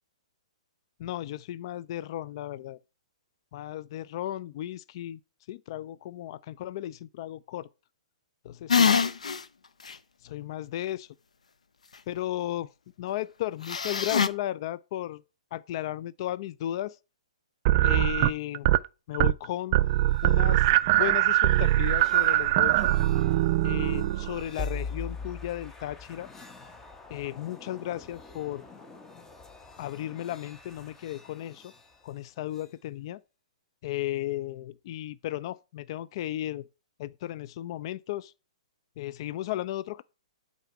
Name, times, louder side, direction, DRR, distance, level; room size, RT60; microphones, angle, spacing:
voice 1, 1.0-2.8 3.5-5.2 5.5-7.7 8.4-9.0 10.2-11.1 12.1-12.7 13.0-15.2 15.5-17.0 17.8-18.7 19.1-19.8 20.2-20.7 21.0-23.0 23.6-26.3 27.1-28.7 29.8-31.7 32.0-33.2 33.8-36.6 37.0-38.3 39.0-40.0, left 13 dB, 45° left, 0.3 m, -35 dB
sound 1, 8.7-9.4 9.9-10.0 13.7-14.3, left 6 dB, 80° left, 0.6 m, -23 dB
sound 2, 17.7-18.9 19.1-19.5 19.7-24.5, right 15 dB, 40° right, 0.3 m, -22 dB
sound 3, 19.9-32.7, left 3 dB, 15° left, 0.9 m, -44 dB
8.1 x 4.1 x 5.7 m
hypercardioid pair, 125°, 4 cm